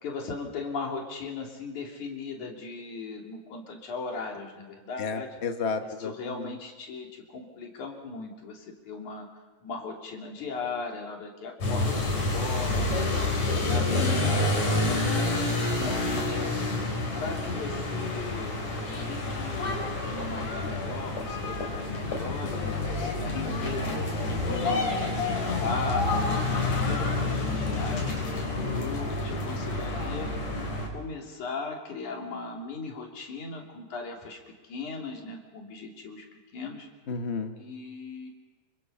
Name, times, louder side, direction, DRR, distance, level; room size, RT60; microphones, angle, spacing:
voice 1, 0.0-5.3 6.0-9.3 9.6-12.9 13.5-16.5 17.1-18.6 19.0-24.0 24.4-28.1 28.6-30.3 30.9-34.4 34.7-36.2 36.5-36.9 37.6-38.3, left 4 dB, 85° left, 0 dB, 4.7 m, -38 dB
voice 2, 5.0-6.6 15.8-16.2 24.5-24.9 37.1-37.6, left 4 dB, 40° left, 6 dB, 0.9 m, -33 dB
sound 1, 11.6-30.9, left 2 dB, 65° left, 5.6 m, -28 dB
28.5 x 25.5 x 5.6 m, 1.3 s
omnidirectional pair, 3.3 m